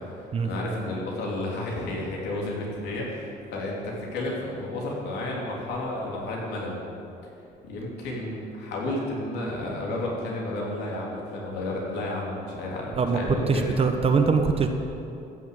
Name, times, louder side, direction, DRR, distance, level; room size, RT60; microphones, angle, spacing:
voice 1, 0.4-6.8 7.6-13.8, left 1 dB, 80° left, -3 dB, 3.2 m, -31 dB
voice 2, 13.0-14.7, right 5 dB, 35° right, 5 dB, 1.1 m, -22 dB
15.0 x 7.1 x 8.4 m, 2.7 s
cardioid pair, 110°, 17 cm